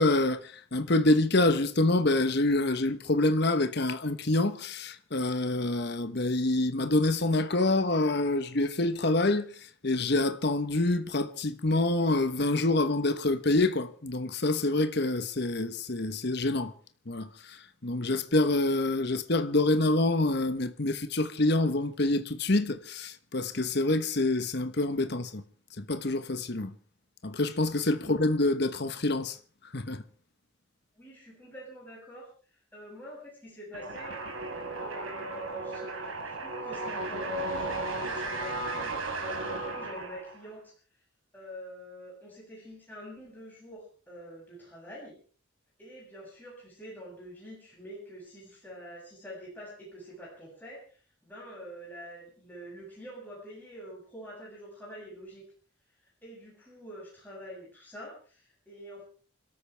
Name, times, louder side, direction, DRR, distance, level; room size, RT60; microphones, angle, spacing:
voice 1, 0.0-9.4 9.8-16.7 17.1-25.4 25.8-26.7 27.2-29.4 29.7-30.0, left 2 dB, 50° left, 1.1 m, -26 dB
voice 2, 30.9-34.2 34.8-40.7 41.3-45.2 45.8-55.4 56.0-59.0, equal, 10° left, 7.5 m, -46 dB
sound 1, 33.7-40.5, right 2 dB, 85° right, 4.3 m, -35 dB
28.5 x 13.5 x 3.4 m
head